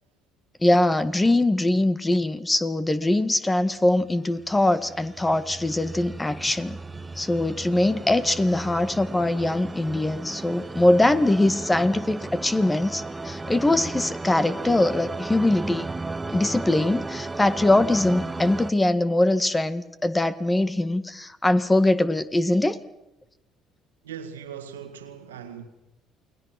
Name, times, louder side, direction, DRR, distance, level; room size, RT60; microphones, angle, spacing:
voice 1, 0.6-6.8 7.2-15.9 16.3-22.8, left 1 dB, 15° left, 1.7 m, -22 dB
sound 1, 4.4-18.7, right 3 dB, 20° right, 1.1 m, -35 dB
voice 2, 24.0-25.7, right 8 dB, 90° right, 1.9 m, -39 dB
29.0 x 20.5 x 6.1 m
hypercardioid pair, 60°, 0 cm